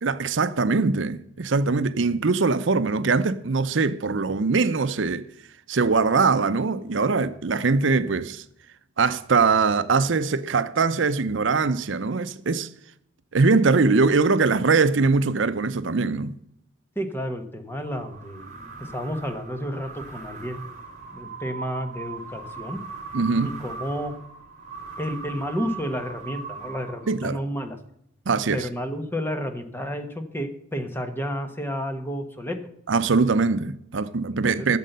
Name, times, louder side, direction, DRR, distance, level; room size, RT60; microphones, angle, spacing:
voice 1, 0.0-5.2 5.7-8.4 9.0-12.7 13.3-16.3 23.1-23.5 27.1-27.4 28.3-28.7 32.9-34.8, right 4 dB, 65° right, 0.7 m, -22 dB
voice 2, 16.9-20.6 21.1-22.8 23.3-24.1 25.0-27.8 28.5-32.6 34.4-34.7, equal, 10° left, 1.2 m, -31 dB
sound 1, 17.7-27.5, right 4 dB, 40° right, 3.3 m, -39 dB
13.0 x 7.5 x 6.7 m
head